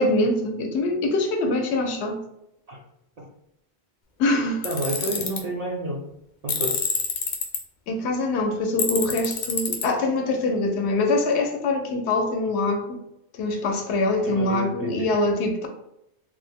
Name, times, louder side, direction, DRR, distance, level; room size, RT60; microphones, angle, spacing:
voice 1, 0.0-2.2 4.2-4.6 7.9-13.0 13.4-15.7, left 2 dB, 85° left, 4 dB, 0.9 m, -24 dB
Tools, 4.6-5.4 6.5-7.6 8.8-9.9, left 5 dB, 60° left, 0.5 m, -26 dB
voice 2, 4.6-6.0 6.4-6.8 14.2-15.1, right 2 dB, 55° right, -2 dB, 0.4 m, -30 dB
3.0 x 2.0 x 3.5 m, 0.82 s
omnidirectional pair, 1.1 m